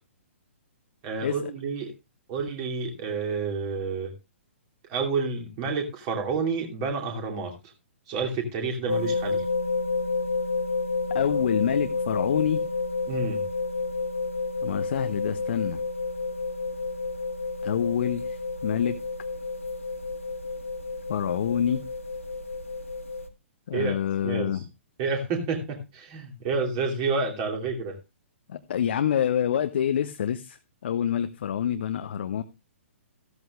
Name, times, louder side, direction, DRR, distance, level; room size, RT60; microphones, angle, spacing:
voice 1, 1.0-1.9 2.3-4.1 4.9-7.5 8.1-9.4 13.1-13.4 23.7-24.0 24.2-24.6 25.0-28.0, right 4 dB, 35° right, 3 dB, 2.6 m, -29 dB
sound 1, 8.9-23.2, left 3 dB, 80° left, 2.0 m, -30 dB
voice 2, 11.1-12.6 14.6-15.8 17.6-19.0 21.1-21.8 23.7-24.6 28.5-30.6 30.8-32.4, left 9 dB, 50° left, 9 dB, 0.7 m, -26 dB
14.0 x 13.0 x 2.4 m, 0.23 s
figure-of-eight pair, 120°, 7 cm